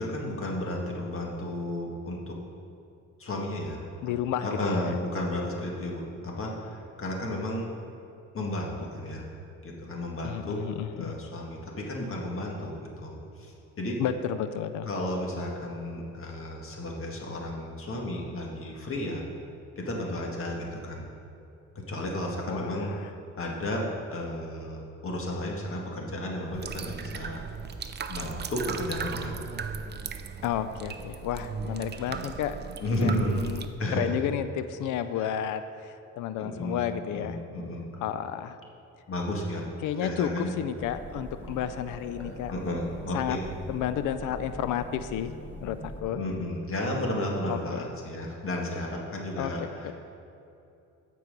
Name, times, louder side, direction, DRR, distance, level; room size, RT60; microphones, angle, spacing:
voice 1, 0.0-2.4 3.2-3.9 4.4-7.7 8.3-9.3 9.6-10.6 11.0-14.0 14.9-19.2 19.8-21.1 21.8-27.4 28.1-29.4 32.8-33.4 33.8-34.2 35.1-35.3 36.4-36.8 37.1-37.8 39.1-39.7 40.0-40.5 42.0-43.4 46.1-49.9, left 1 dB, 45° left, -1 dB, 1.9 m, -33 dB
voice 2, 4.0-5.0 10.2-11.1 14.0-14.9 22.5-23.1 30.4-32.6 33.0-33.7 33.9-37.4 38.0-38.6 39.8-42.5 43.1-43.4 43.7-45.3 45.6-46.2 47.5-47.8 49.4-49.9, left 10 dB, 85° left, 11 dB, 0.5 m, -32 dB
sound 1, 26.5-33.7, right 6 dB, 35° right, 0.5 m, -37 dB
sound 2, 40.7-46.0, right 1 dB, 5° left, 1.7 m, -43 dB
14.0 x 4.7 x 5.2 m, 2.7 s
cardioid pair, 90°, 30 cm